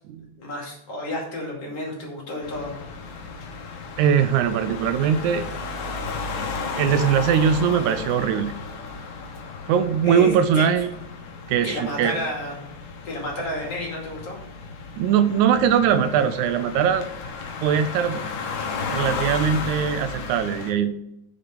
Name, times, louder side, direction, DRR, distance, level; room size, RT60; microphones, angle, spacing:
voice 1, 0.4-3.2 10.0-10.6 11.6-12.6 13.0-14.4, left 1 dB, 55° left, -2 dB, 3.3 m, -31 dB
sound 1, 2.4-20.7, left 4 dB, 85° left, 2.8 m, -34 dB
voice 2, 4.0-5.5 6.8-8.5 9.7-10.9 11.5-12.2 14.9-17.1 17.6-18.2 18.9-20.9, right 8 dB, 80° right, 10 dB, 2.0 m, -21 dB
6.8 x 6.6 x 5.3 m, 0.81 s
omnidirectional pair, 3.5 m